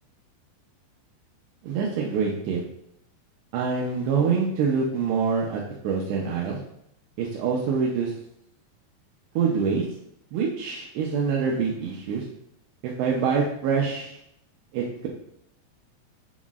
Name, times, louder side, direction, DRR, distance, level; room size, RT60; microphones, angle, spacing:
voice 1, 1.6-2.6 3.5-6.6 7.2-8.1 9.4-9.8 10.3-12.2 12.8-14.2 14.7-15.1, right 5 dB, 80° right, -3 dB, 2.8 m, -25 dB
7.1 x 5.8 x 2.4 m, 0.76 s
omnidirectional pair, 5.2 m